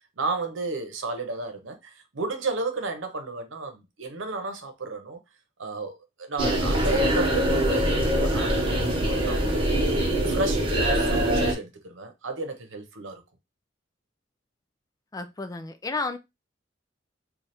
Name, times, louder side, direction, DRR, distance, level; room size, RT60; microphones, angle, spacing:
voice 1, 0.2-5.2 5.6-9.9 10.2-13.2, right 3 dB, 80° right, 0.9 m, -33 dB
sound 1, 6.4-11.5, right 1 dB, 25° right, 1.1 m, -23 dB
voice 2, 15.1-16.2, left 3 dB, 20° left, 0.4 m, -32 dB
3.2 x 2.4 x 4.2 m
head